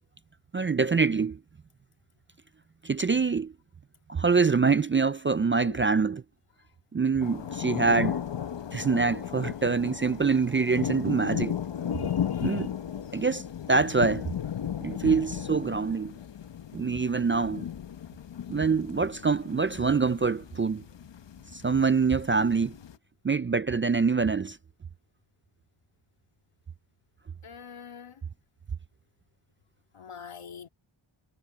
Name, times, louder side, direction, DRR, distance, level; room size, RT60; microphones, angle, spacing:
voice 1, 0.5-1.4 2.8-3.5 4.1-6.2 6.9-8.2 8.7-11.6 12.4-12.7 13.1-14.3 14.8-16.1 16.7-17.7 18.5-20.8 21.5-22.7 23.2-24.6, right 4 dB, 30° right, 0.3 m, -25 dB
sound 1, 7.2-23.0, left 9 dB, 60° left, 1.0 m, -35 dB
voice 2, 11.9-12.7 27.4-28.2 29.9-30.7, left 6 dB, 85° left, 2.5 m, -45 dB
wide cardioid pair, 125°, 49 cm